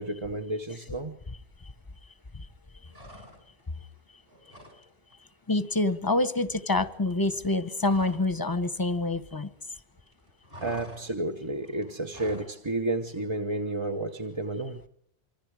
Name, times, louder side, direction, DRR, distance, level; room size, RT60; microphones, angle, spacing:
voice 1, 0.0-1.2 10.6-14.8, right 2 dB, 30° right, 3 dB, 1.0 m, -31 dB
sound 1, 2.9-3.7 4.0-4.8 5.1-5.3 5.6-8.4 8.6-9.7 10.0-12.6, equal, 65° right, 6.3 m, -48 dB
voice 2, 5.5-9.5, left 2 dB, 20° left, 14 dB, 1.0 m, -27 dB
26.5 x 24.5 x 4.9 m, 0.71 s
omnidirectional pair, 1.1 m